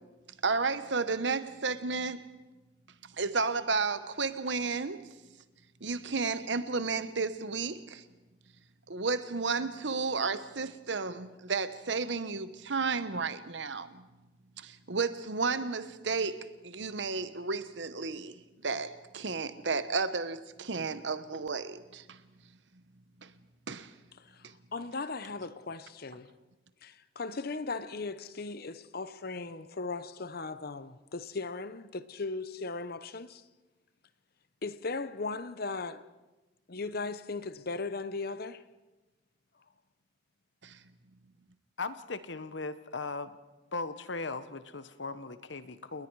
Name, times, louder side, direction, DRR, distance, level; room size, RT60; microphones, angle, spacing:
voice 1, 0.4-2.2 3.2-5.0 5.8-8.0 8.9-14.1 14.6-22.2 23.2-23.3 23.7-23.9 24.4-24.5 40.6-40.8, right 4 dB, 70° right, 1.1 m, -32 dB
voice 2, 24.2-26.3 26.8-33.4 34.6-36.1 36.7-38.7, left 3 dB, 55° left, 0.9 m, -38 dB
voice 3, 41.8-43.3 43.7-46.1, left 3 dB, 70° left, 1.2 m, -38 dB
29.5 x 20.5 x 4.8 m
head